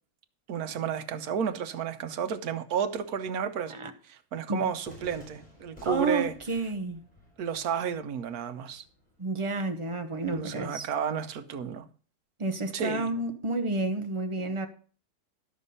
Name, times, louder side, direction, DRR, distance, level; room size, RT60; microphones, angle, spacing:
voice 1, 0.5-3.8 4.1-6.3 7.4-8.8 10.4-11.9 12.7-13.1, right 7 dB, 80° right, 1.3 m, -32 dB
Cheering / Fireworks, 4.8-10.8, left 1 dB, 5° left, 5.3 m, -55 dB
voice 2, 5.8-7.0 9.2-10.9 12.4-14.7, right 2 dB, 25° right, 0.8 m, -30 dB
11.5 x 6.2 x 5.4 m
omnidirectional pair, 1.5 m